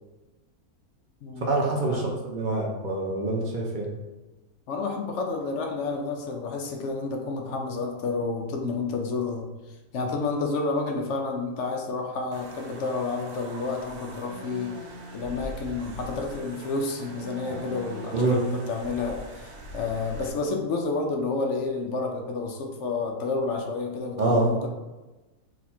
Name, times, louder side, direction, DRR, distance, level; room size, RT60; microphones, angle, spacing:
voice 1, 1.4-3.9 18.1-18.4 24.2-24.5, right 2 dB, 55° right, -2 dB, 0.5 m, -25 dB
voice 2, 4.7-14.7 15.1-24.7, left 3 dB, 70° left, 2 dB, 0.7 m, -30 dB
sound 1, 12.3-20.3, right 1 dB, 80° right, 1.2 m, -42 dB
4.0 x 2.4 x 4.2 m, 1.1 s
omnidirectional pair, 1.6 m